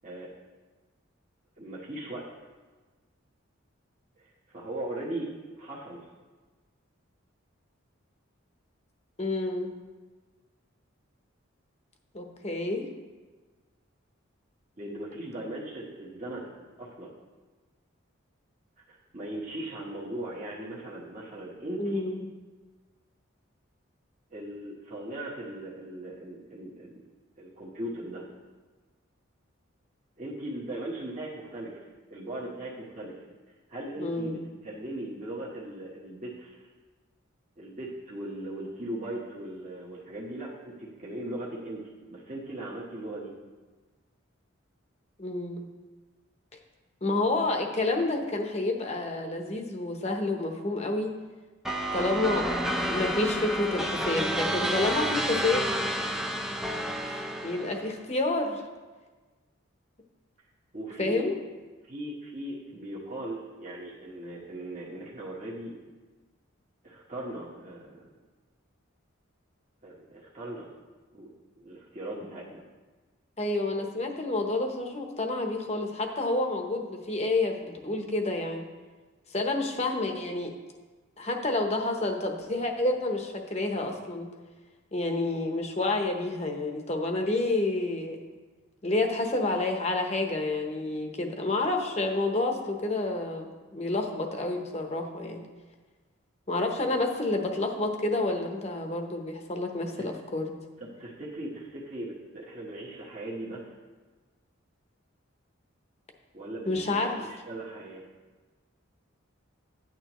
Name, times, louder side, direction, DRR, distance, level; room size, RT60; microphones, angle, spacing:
voice 1, 1.6-2.3 4.2-5.3 5.6-6.0 14.8-16.5 16.8-17.1 18.9-22.1 24.3-27.0 27.4-28.2 30.2-33.2 33.7-36.7 37.6-43.3 60.7-61.3 61.9-65.7 66.8-68.1 69.8-70.7 71.1-71.3 71.6-72.6 100.0-100.1 100.8-103.7 106.3-108.0, right 1 dB, 35° right, -6 dB, 1.2 m, -39 dB
voice 2, 9.2-9.7 12.1-12.9 21.8-22.3 34.0-34.4 45.2-45.7 47.0-51.1 51.9-52.6 52.9-55.9 57.0-58.6 61.0-61.4 73.4-78.6 79.3-80.5 81.2-84.3 84.9-88.2 88.8-95.4 96.5-100.5 106.7-107.3, left 2 dB, 30° left, 3 dB, 0.9 m, -29 dB
sound 1, 51.6-57.9, equal, ahead, 0.5 m, -30 dB
10.5 x 9.1 x 3.1 m, 1.3 s
head